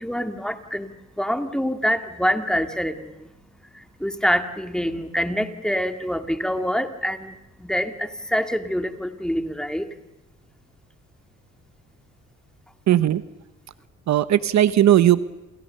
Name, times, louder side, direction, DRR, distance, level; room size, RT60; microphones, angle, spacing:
voice 1, 0.0-3.3 3.7-9.9, equal, ahead, 7 dB, 2.3 m, -26 dB
voice 2, 12.9-13.2 14.1-15.2, right 12 dB, 65° right, 14 dB, 1.1 m, -17 dB
29.0 x 29.0 x 6.8 m, 0.91 s
cardioid pair, 90°, 30 cm